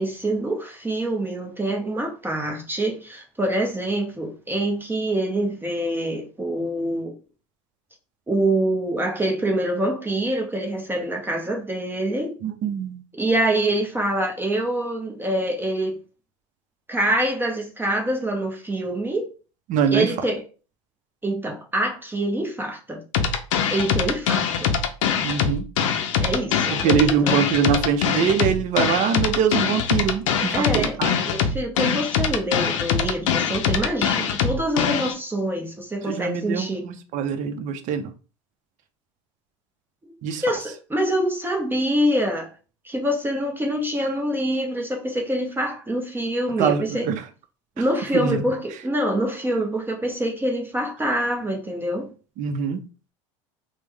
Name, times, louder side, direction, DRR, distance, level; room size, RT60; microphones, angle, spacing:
voice 1, 0.0-7.1 8.3-12.3 13.2-16.0 16.9-19.3 19.9-20.4 21.2-23.0 23.7-24.7 26.2-27.4 30.5-31.0 31.2-36.9 40.4-42.5 42.8-47.1 47.8-52.1, right 1 dB, 15° right, 0.7 m, -25 dB
voice 2, 12.4-13.0 19.7-20.1 25.2-25.6 26.8-31.2 36.1-38.1 40.2-40.4 46.6-47.2 48.1-48.5 52.4-52.8, right 7 dB, 50° right, 0.6 m, -23 dB
sound 1, 23.1-35.1, left 7 dB, 80° left, 0.5 m, -23 dB
3.0 x 2.1 x 3.4 m
hypercardioid pair, 85°, 16 cm